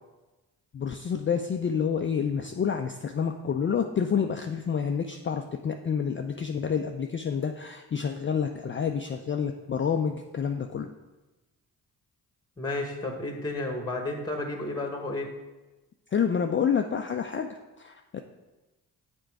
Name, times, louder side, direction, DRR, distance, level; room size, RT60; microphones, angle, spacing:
voice 1, 0.7-10.9 16.1-17.5 17.8-18.2, left 7 dB, 30° left, 5 dB, 0.4 m, -28 dB
voice 2, 12.6-15.3, left 2 dB, 10° left, 3 dB, 1.0 m, -32 dB
6.7 x 3.8 x 4.6 m, 1.1 s
hypercardioid pair, 45°, 46 cm